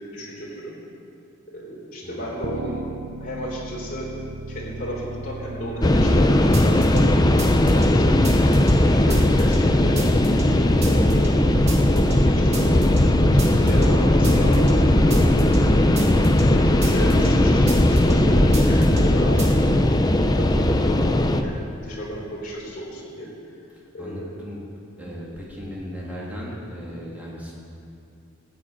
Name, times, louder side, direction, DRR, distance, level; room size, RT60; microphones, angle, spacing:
voice 1, 0.1-0.7 1.5-2.8 3.2-4.1 4.5-8.2 8.4-8.6 9.0-10.3 10.6-11.3 11.9-12.9 13.3-16.1 16.5-19.8 20.4-23.3 23.9-24.3, equal, 40° left, -4 dB, 3.6 m, -33 dB
sound 1, 2.4-8.7, right 2 dB, 60° right, 0.5 m, -36 dB
sound 2, 5.8-21.4, left 1 dB, 20° left, 0.5 m, -18 dB
sound 3, 6.5-7.1 7.4-8.8 9.1-9.6 9.8-10.5 10.8-11.3 11.5-12.2 12.5-13.0 13.2-14.0 14.2-15.7 16.0-16.4 16.7-17.4 17.7-18.1 18.4-19.1 19.4-19.5, right 1 dB, 30° right, 1.8 m, -27 dB
voice 2, 24.0-24.6 25.0-27.5, equal, 5° right, -6 dB, 2.9 m, -36 dB
14.5 x 7.4 x 8.8 m, 2.6 s
head